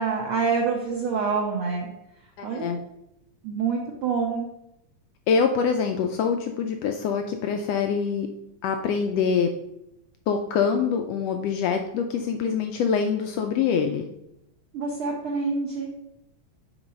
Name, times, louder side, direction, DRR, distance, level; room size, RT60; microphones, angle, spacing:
voice 1, 0.0-1.9 2.4-2.7 3.4-4.5 14.7-15.9, right 5 dB, 65° right, -1 dB, 1.5 m, -26 dB
voice 2, 2.4-2.8 5.3-8.3 8.6-9.5 10.3-14.1, left 6 dB, 85° left, 5 dB, 1.4 m, -25 dB
7.1 x 4.4 x 5.1 m, 0.83 s
omnidirectional pair, 3.4 m